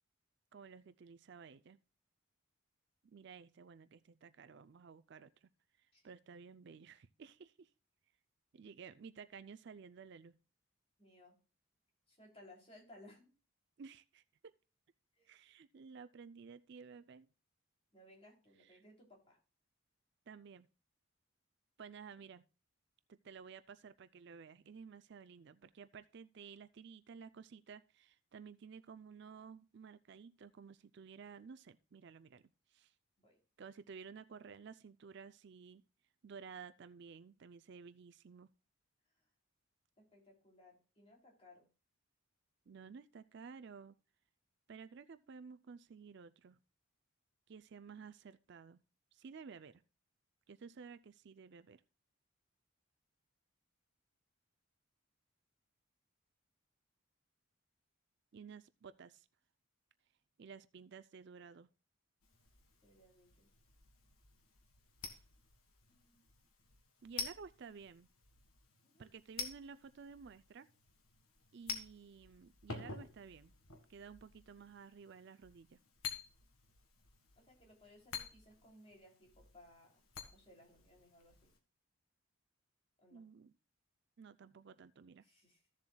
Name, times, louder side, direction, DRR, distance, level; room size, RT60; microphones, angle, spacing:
voice 1, 0.5-1.8 3.0-5.5 5.8-7.7 8.5-10.3 13.8-14.5 15.2-17.3 18.7-18.8 20.3-20.7 21.8-22.4 23.1-32.9 33.6-35.8 36.2-38.5 42.7-44.0 44.7-46.6 47.5-48.8 49.1-49.8 50.5-51.8 58.3-59.3 60.4-61.7 65.0-65.2 67.0-68.1 69.0-70.7 71.5-73.5 73.9-75.8 83.1-83.5 84.2-85.2, right 5 dB, 55° right, 0.4 m, -54 dB
voice 2, 11.0-11.4 12.1-13.3 15.2-15.3 17.9-19.4 33.2-33.4 40.0-41.7 62.8-63.5 65.9-66.2 68.8-69.0 77.4-81.5 83.0-83.2 85.2-85.6, left 1 dB, 30° left, 3.0 m, -62 dB
sound 1, 62.2-81.6, left 5 dB, 85° left, 1.7 m, -50 dB
15.0 x 7.3 x 2.3 m
head